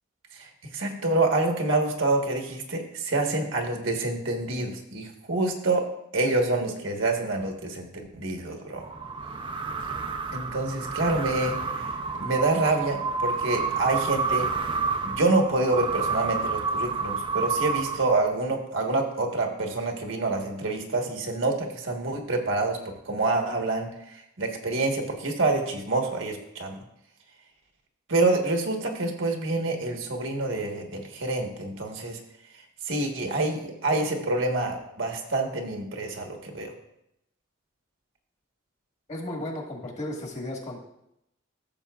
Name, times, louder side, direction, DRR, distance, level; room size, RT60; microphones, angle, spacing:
voice 1, 0.3-5.9 6.1-8.8 10.3-11.6 12.2-14.5 15.0-22.8 23.0-26.8 28.1-32.2 32.8-36.7, right 2 dB, 70° right, 2 dB, 1.3 m, -27 dB
sound 1, 8.8-18.5, right 4 dB, 25° right, 0.5 m, -29 dB
voice 2, 39.1-40.8, left 1 dB, 35° left, 0 dB, 1.5 m, -34 dB
14.0 x 7.0 x 2.4 m, 0.81 s
head